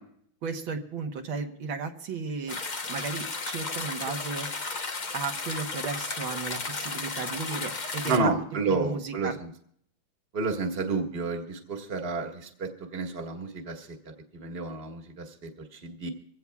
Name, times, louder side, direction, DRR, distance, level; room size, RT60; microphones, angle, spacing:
voice 1, 0.4-2.6 2.9-4.5 5.1-8.3 8.6-9.4, right 5 dB, 75° right, 4 dB, 2.0 m, -34 dB
sound 1, 2.5-8.2, left 4 dB, 40° left, 0.7 m, -34 dB
voice 2, 8.0-9.5 10.3-16.1, right 3 dB, 30° right, 2 dB, 1.8 m, -31 dB
24.0 x 16.5 x 2.3 m, 0.65 s
omnidirectional pair, 2.2 m